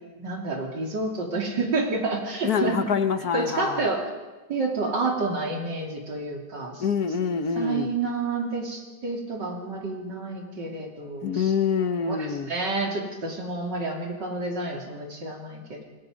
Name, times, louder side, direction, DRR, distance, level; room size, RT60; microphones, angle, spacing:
voice 1, 0.2-2.8 3.3-4.1 4.5-6.9 7.5-11.5 12.0-15.8, right 3 dB, 80° right, 0 dB, 4.0 m, -29 dB
voice 2, 2.4-3.8 6.8-7.9 11.2-12.5, left 6 dB, 60° left, 9 dB, 1.6 m, -25 dB
28.0 x 19.0 x 5.3 m, 1.2 s
omnidirectional pair, 1.9 m